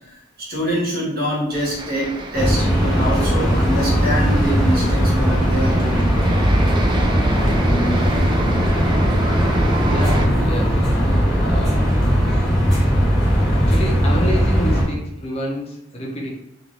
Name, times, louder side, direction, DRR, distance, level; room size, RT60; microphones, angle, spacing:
voice 1, 0.0-6.2, equal, 55° right, -4 dB, 1.2 m, -25 dB
sound 1, 1.5-10.3, right 2 dB, 25° right, 0.3 m, -30 dB
sound 2, 2.3-14.8, equal, ahead, 1.1 m, -18 dB
voice 2, 9.9-10.8 11.4-11.9 13.5-16.3, equal, 30° left, -2 dB, 0.6 m, -28 dB
2.8 x 2.5 x 3.1 m, 0.82 s
head